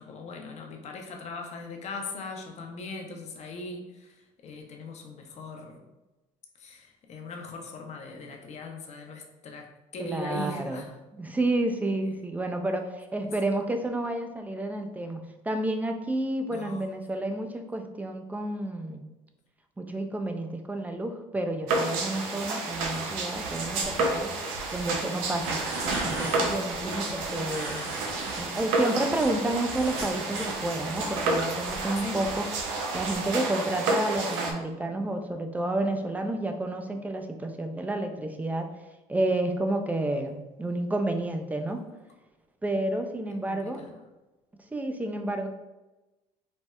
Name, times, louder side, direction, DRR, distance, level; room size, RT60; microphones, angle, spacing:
voice 1, 0.0-4.1 4.4-5.8 6.6-9.7 9.9-10.9 16.5-16.9 26.7-27.8 32.0-32.2 43.5-44.0, left 3 dB, 45° left, 2 dB, 0.6 m, -40 dB
voice 2, 10.0-10.8 11.1-19.0 19.8-24.3 24.7-25.6 26.0-27.8 28.4-32.5 32.9-38.7 39.1-41.8 42.6-43.8 44.7-45.5, right 1 dB, 10° right, 5 dB, 0.4 m, -30 dB
sound 1, 21.7-34.5, right 3 dB, 85° right, 0.5 m, -30 dB
sound 2, 25.2-26.6 27.4-28.4 28.8-30.6, right 2 dB, 60° right, 1.1 m, -36 dB
4.2 x 2.0 x 2.3 m, 1.1 s
supercardioid pair, 80°, 15 cm